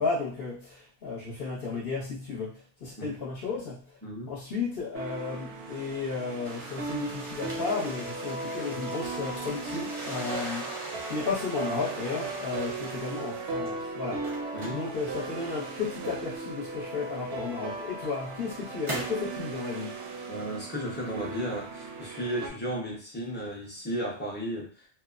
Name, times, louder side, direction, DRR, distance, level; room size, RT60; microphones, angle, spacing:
voice 1, 0.0-3.8 4.3-10.6 11.1-14.2 14.7-19.9, left 4 dB, 55° left, -5 dB, 0.9 m, -33 dB
sound 1, 4.9-22.5, right 3 dB, 65° right, 0.8 m, -37 dB
sound 2, 6.4-13.7 14.1-16.1 17.0-17.1 17.8-19.3, right 1 dB, 35° right, 0.6 m, -41 dB
voice 2, 14.5-14.8 20.3-24.9, equal, 10° left, -5 dB, 0.6 m, -34 dB
2.8 x 2.0 x 2.4 m, 0.41 s
omnidirectional pair, 1.2 m